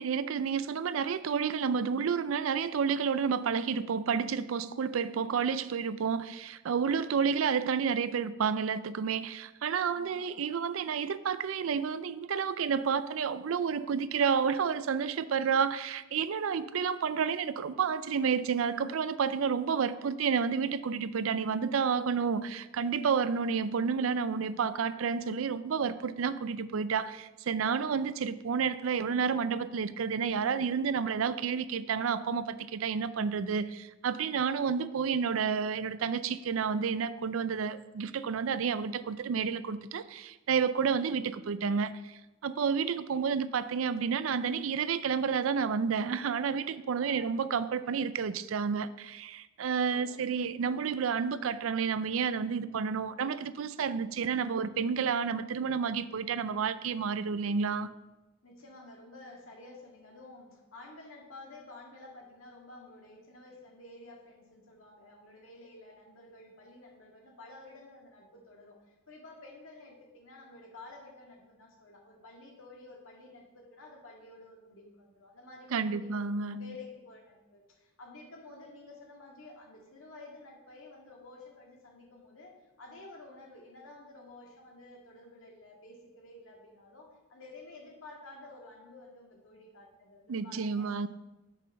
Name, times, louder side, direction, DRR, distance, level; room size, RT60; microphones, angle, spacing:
voice 1, 0.0-57.9 75.7-76.7 90.3-91.1, right 6 dB, 80° right, 14 dB, 0.4 m, -30 dB
voice 2, 9.9-10.6 43.1-43.4 47.0-47.3 49.7-50.2 55.9-56.0 58.4-82.5 82.8-91.1, left 2 dB, 85° left, 0 dB, 1.9 m, -51 dB
6.6 x 5.7 x 6.3 m, 1.1 s
head